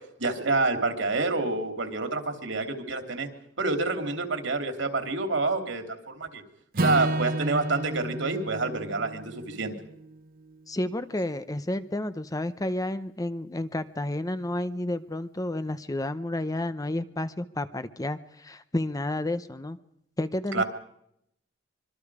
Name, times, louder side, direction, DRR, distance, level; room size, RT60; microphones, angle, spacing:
voice 1, 0.2-3.3 3.6-6.4 6.8-9.7 20.5-20.6, right 3 dB, 75° right, 5 dB, 3.2 m, -28 dB
Acoustic guitar / Strum, 6.7-11.0, right 2 dB, 50° right, 1.0 m, -32 dB
voice 2, 10.7-19.8 20.2-20.6, left 1 dB, 20° left, 12 dB, 0.8 m, -31 dB
25.5 x 23.5 x 4.9 m, 0.76 s
head